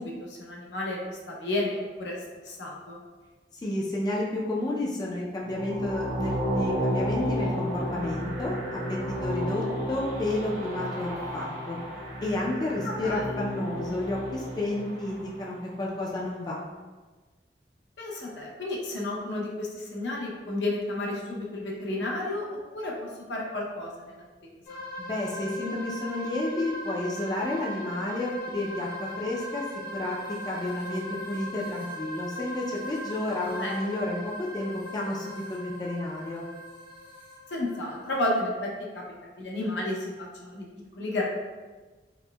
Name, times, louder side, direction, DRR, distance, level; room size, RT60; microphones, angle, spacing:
voice 1, 0.0-2.2 2.4-3.0 12.8-13.2 18.0-22.4 22.7-22.9 23.3-24.1 24.4-24.8 33.3-33.7 37.5-39.0 39.4-40.6 41.0-41.2, left 1 dB, 80° left, -2 dB, 0.7 m, -32 dB
voice 2, 3.6-11.8 12.2-16.6 25.0-29.6 29.9-30.2 30.4-36.4, left 1 dB, 25° left, -3 dB, 0.3 m, -31 dB
sound 1, 5.4-15.6, equal, 55° right, 0.6 m, -32 dB
sound 2, 24.7-38.2, equal, 55° left, 1.0 m, -39 dB
4.2 x 2.1 x 2.2 m, 1.3 s
head